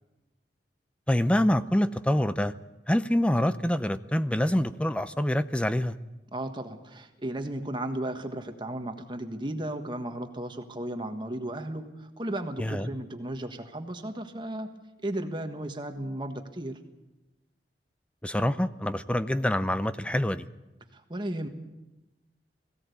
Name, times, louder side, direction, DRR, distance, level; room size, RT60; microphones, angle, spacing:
voice 1, 1.1-2.5 2.9-6.0 12.6-12.9 18.2-20.5, left 1 dB, 5° left, 13 dB, 0.6 m, -26 dB
voice 2, 6.3-14.7 15.0-16.8 20.9-21.5, right 1 dB, 25° right, 6 dB, 1.4 m, -35 dB
20.0 x 16.5 x 8.3 m, 1.0 s
head